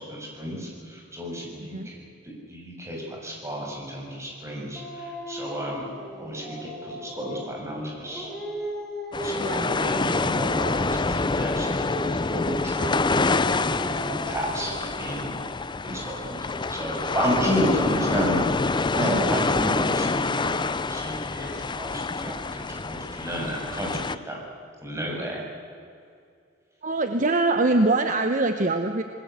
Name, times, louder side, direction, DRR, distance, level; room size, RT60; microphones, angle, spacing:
voice 1, 0.0-2.0 2.2-5.8 6.2-8.3 9.2-11.8 12.1-12.9 13.4-15.3 15.8-16.4 16.7-24.4 24.8-25.4, equal, 15° right, -2 dB, 6.9 m, -32 dB
Dog, 4.8-7.6 8.0-11.1 11.5-15.1, equal, ahead, 4.9 m, -36 dB
sound 1, 9.1-24.2, left 3 dB, 25° left, 0.6 m, -26 dB
voice 2, 9.4-10.4 15.8-16.0 26.8-29.0, right 2 dB, 45° right, 7 dB, 1.1 m, -24 dB
27.5 x 20.0 x 8.2 m, 2.3 s
head